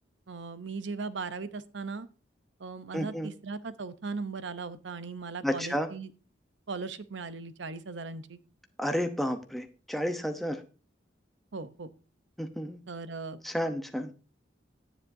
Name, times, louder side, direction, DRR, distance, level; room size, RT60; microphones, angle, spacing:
voice 1, 0.3-2.1 2.6-6.1 6.7-8.4 11.5-11.9 12.9-13.4, right 4 dB, 75° right, 13 dB, 0.7 m, -38 dB
voice 2, 2.9-3.3 5.4-5.9 8.8-10.6 12.4-12.8 13.4-14.1, equal, ahead, 5 dB, 0.7 m, -31 dB
17.5 x 7.3 x 2.7 m, 0.36 s
head